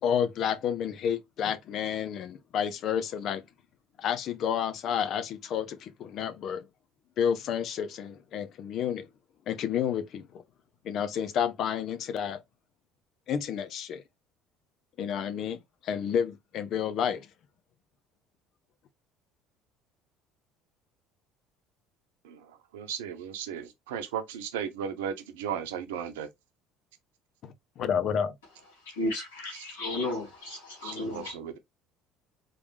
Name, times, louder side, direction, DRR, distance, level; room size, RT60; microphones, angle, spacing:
voice 1, 0.0-3.4 4.0-6.7 7.2-9.1 9.5-10.4 10.8-12.4 13.3-14.0 15.0-17.3 27.4-28.3, left 8 dB, 55° left, 0.8 m, -30 dB
voice 2, 22.2-26.3 29.5-29.7 30.8-31.6, right 8 dB, 75° right, 0.8 m, -36 dB
voice 3, 28.9-31.3, left 2 dB, 85° left, 2.3 m, -34 dB
3.9 x 3.4 x 3.1 m
hypercardioid pair, 65°, 0 cm